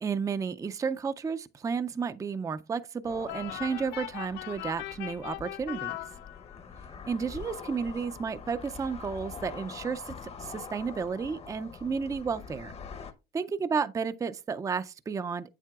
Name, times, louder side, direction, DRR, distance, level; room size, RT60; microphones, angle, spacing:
voice 1, 0.0-6.1 7.1-12.7 13.3-15.5, right 5 dB, 20° right, 0.4 m, -32 dB
sound 1, 3.0-13.1, left 5 dB, 35° left, 0.8 m, -45 dB
sound 2, 3.3-6.8, left 16 dB, 85° left, 0.4 m, -39 dB
8.4 x 7.4 x 2.3 m
cardioid pair, 110°, 17 cm